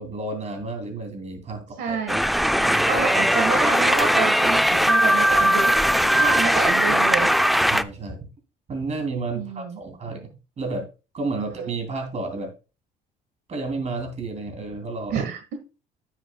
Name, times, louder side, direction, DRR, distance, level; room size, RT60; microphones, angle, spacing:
voice 1, 0.0-2.0 2.6-2.8 7.7-8.3 8.7-10.3 10.6-10.9 11.1-12.5 13.5-15.2, right 3 dB, 40° right, 5 dB, 2.9 m, -31 dB
voice 2, 1.8-2.4 2.9-5.7 6.0-7.3 9.3-9.8 11.4-11.5 15.1-15.5, right 6 dB, 75° right, 6 dB, 1.5 m, -28 dB
sound 1, 2.1-7.8, equal, ahead, 0.3 m, -19 dB
9.6 x 7.6 x 2.2 m, 0.30 s
cardioid pair, 110°, 17 cm